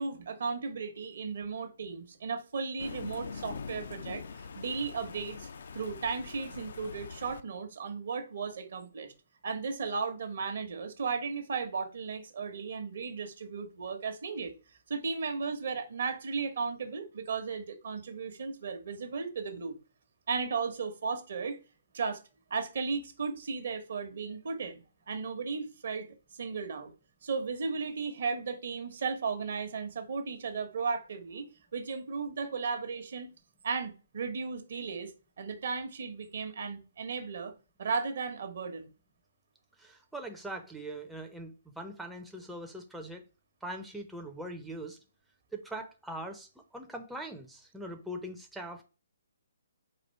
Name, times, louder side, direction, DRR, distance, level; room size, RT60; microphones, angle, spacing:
voice 1, 0.0-4.2 4.5-5.5 5.7-9.1 9.4-14.5 14.9-19.7 20.3-21.6 21.9-22.2 22.5-26.9 27.2-31.5 31.7-33.3 33.6-35.1 35.4-37.5 37.8-38.9, right 5 dB, 60° right, 0.9 m, -35 dB
Thunder, 2.8-7.4, left 5 dB, 65° left, 0.4 m, -43 dB
voice 2, 39.8-43.2 43.6-45.0 45.5-48.8, right 1 dB, 5° right, 0.5 m, -41 dB
4.2 x 2.5 x 4.4 m
hypercardioid pair, 140°, 0 cm